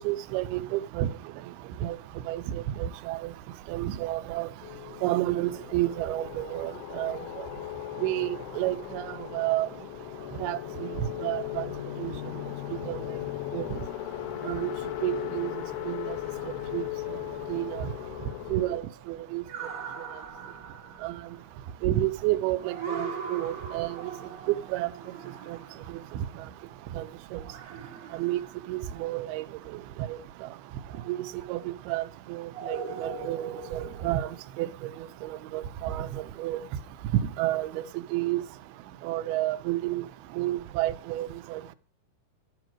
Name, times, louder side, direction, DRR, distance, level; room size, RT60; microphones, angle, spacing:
voice 1, 0.1-1.1 1.8-2.0 2.3-3.3 3.7-4.5 5.0-7.2 8.0-8.3 8.6-9.0 9.3-9.7 10.4-10.6 11.2-11.7 12.0-12.1 12.9-13.0 13.5-13.7 14.5-14.7 15.0-15.5 15.9-16.2 16.7-16.8 17.5-17.9 18.5-18.8 19.1-19.4 21.0-21.1 21.8-23.9 24.7-24.9 25.5-25.6 27.0-27.1 27.3-27.4 28.1-28.4 28.7-29.4 30.1-30.2 31.1-31.2 31.5-31.6 31.9-32.1 32.3-34.3 34.6-34.7 35.2-36.1 36.4-36.6 37.4-37.8 38.1-38.4 39.0-40.0 40.4-41.6, right 15 dB, 90° right, 2.6 m, -30 dB
sound 1, 4.6-18.8, left 15 dB, 85° left, 2.6 m, -37 dB
sound 2, 17.2-26.9 27.4-29.4 30.8-31.6 32.5-34.4, right 5 dB, 70° right, 0.8 m, -41 dB
12.0 x 5.0 x 6.1 m
omnidirectional pair, 4.3 m